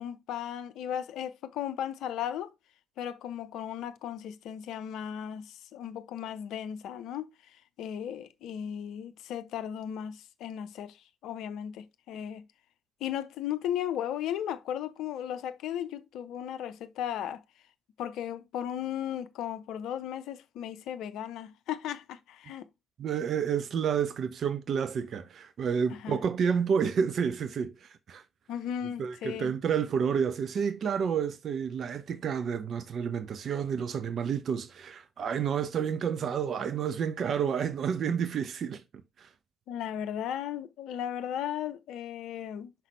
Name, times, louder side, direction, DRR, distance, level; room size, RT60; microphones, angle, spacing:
voice 1, 0.0-2.5 3.0-7.3 7.8-11.0 11.2-12.4 13.0-17.4 18.0-22.6 26.0-26.2 28.5-29.5 39.7-42.7, left 10 dB, 65° left, 0.5 m, -36 dB
voice 2, 23.0-28.2 29.0-38.8 39.2-39.3, right 7 dB, 55° right, 0.7 m, -30 dB
5.9 x 5.7 x 3.2 m
hypercardioid pair, 45°, 0 cm